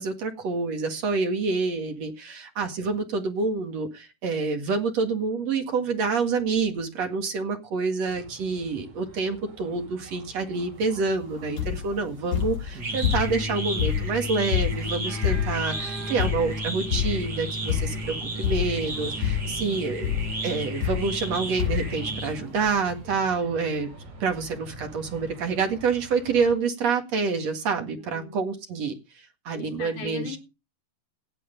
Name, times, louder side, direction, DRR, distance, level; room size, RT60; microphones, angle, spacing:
voice 1, 0.0-20.1 20.4-23.9 24.2-28.9 29.4-30.4, right 4 dB, 50° right, 5 dB, 2.5 m, -27 dB
sound 1, 8.1-26.6, right 1 dB, 85° right, 7.7 m, -45 dB
sound 2, 11.6-11.9 12.3-13.5 13.8-15.7 16.2-16.6 16.9-17.3 17.7-18.1 18.4-18.9 19.2-19.6 20.0-20.3 20.8-21.3 21.6-22.0 22.7-22.8 23.0-23.1, left 10 dB, 40° left, 6.7 m, -27 dB
sound 3, 12.3-22.7, right 1 dB, 30° right, 2.2 m, -33 dB
voice 2, 28.0-28.4 29.5-30.4, left 6 dB, 70° left, 1 dB, 5.6 m, -39 dB
17.5 x 8.0 x 5.2 m, 0.28 s
omnidirectional pair, 4.7 m